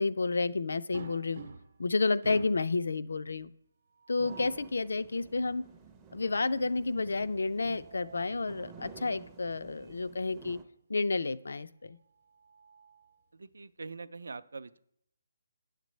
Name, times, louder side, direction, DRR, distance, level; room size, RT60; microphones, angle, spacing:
voice 1, 0.0-1.4 1.8-3.5 4.1-5.6 6.1-10.6 10.9-12.0, left 3 dB, 80° left, 14 dB, 0.4 m, -30 dB
sound 1, 0.9-1.9 2.2-2.7 3.9-4.7 7.3-8.4 9.8-10.0 10.3-10.4 12.0-13.2, right 4 dB, 50° right, 0.7 m, -49 dB
sound 2, 4.2-10.6, right 5 dB, 10° right, 0.4 m, -52 dB
voice 2, 13.3-14.8, right 4 dB, 85° right, 15 dB, 0.4 m, -43 dB
9.3 x 6.6 x 3.1 m, 0.72 s
hypercardioid pair, 170°, 0 cm